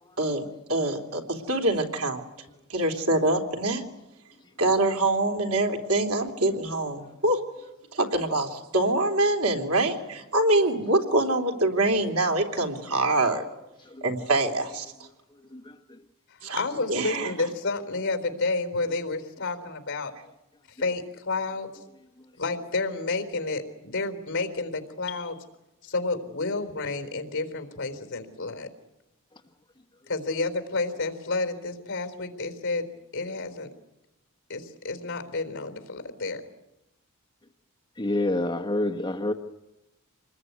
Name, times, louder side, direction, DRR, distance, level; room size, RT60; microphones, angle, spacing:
voice 1, 0.2-2.2 2.7-3.8 4.6-7.4 7.9-13.4 14.0-14.9 16.4-16.6 16.9-17.3, right 2 dB, 80° right, 3 dB, 3.4 m, -25 dB
voice 2, 15.5-16.0 16.4-16.6 38.0-39.3, left 1 dB, 20° left, 3 dB, 1.1 m, -29 dB
voice 3, 16.5-20.1 20.7-21.7 22.4-25.4 25.8-28.7 30.1-32.9 33.1-33.7 34.5-36.4, left 3 dB, 55° left, 8 dB, 3.9 m, -30 dB
27.5 x 20.5 x 9.6 m, 0.96 s
head